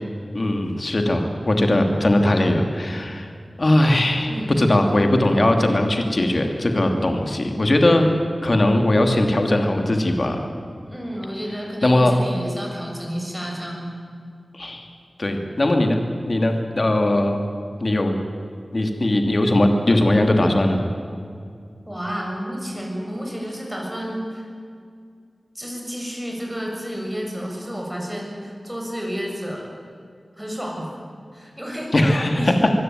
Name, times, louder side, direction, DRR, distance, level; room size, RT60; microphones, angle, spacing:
voice 1, 0.3-3.3 3.6-4.3 4.6-8.1 8.4-10.5 11.8-12.2 14.5-14.9 15.2-16.0 16.3-17.4 17.8-18.2 18.7-20.8 31.9-32.5, left 1 dB, 50° left, 4 dB, 2.8 m, -19 dB
voice 2, 4.3-4.7 10.9-13.9 21.9-24.5 25.6-29.7 30.4-31.0 31.3-31.9 32.3-32.6, equal, 10° right, -1 dB, 6.8 m, -31 dB
24.5 x 16.0 x 9.3 m, 2.3 s
wide cardioid pair, 60°, 0 cm